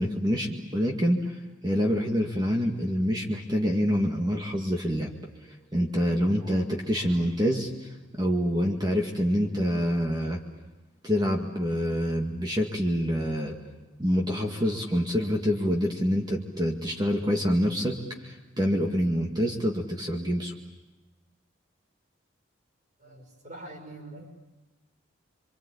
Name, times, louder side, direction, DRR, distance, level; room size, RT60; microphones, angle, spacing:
voice 1, 0.0-1.3 1.6-5.1 5.7-7.7 8.2-10.4 11.0-13.6 14.0-20.5, equal, 20° right, 1 dB, 2.1 m, -26 dB
voice 2, 23.0-24.3, right 1 dB, 40° right, 4 dB, 5.8 m, -44 dB
28.0 x 24.5 x 8.6 m, 1.2 s
head